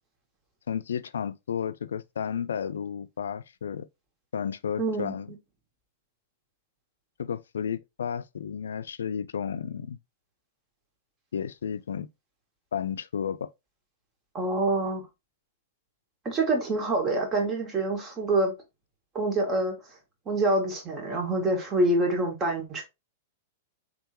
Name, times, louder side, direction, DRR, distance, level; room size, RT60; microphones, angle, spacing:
voice 1, 0.7-3.9 4.3-5.3 7.2-10.0 11.3-12.1 12.7-13.5, left 7 dB, 85° left, 0.4 m, -32 dB
voice 2, 4.8-5.1 14.3-15.0 16.3-18.5 19.1-19.7 20.3-22.8, right 2 dB, 30° right, 1.9 m, -26 dB
3.7 x 3.5 x 3.0 m
hypercardioid pair, 120°, 0 cm